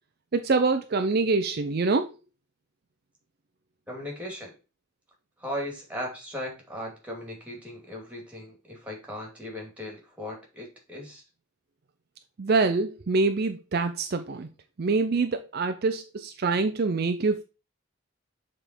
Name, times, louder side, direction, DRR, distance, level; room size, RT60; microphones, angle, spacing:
voice 1, 0.3-2.1 12.4-14.5 14.8-17.4, right 3 dB, 50° right, 0.5 m, -25 dB
voice 2, 3.9-4.6 5.4-11.2, left 1 dB, 5° right, 2.3 m, -37 dB
7.0 x 3.7 x 4.3 m
head